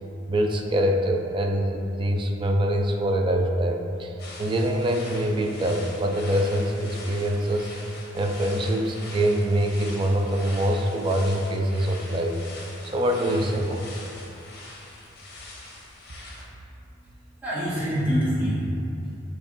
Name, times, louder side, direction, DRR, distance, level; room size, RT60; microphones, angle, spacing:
voice 1, 0.3-4.1 4.4-7.7 8.1-12.4 12.8-13.9, right 1 dB, 25° right, 3 dB, 0.3 m, -24 dB
sound 1, 4.2-16.4, left 2 dB, 55° left, 0.7 m, -43 dB
voice 2, 16.6-19.2, equal, 10° right, -12 dB, 1.5 m, -27 dB
6.5 x 2.9 x 2.5 m, 2.7 s
head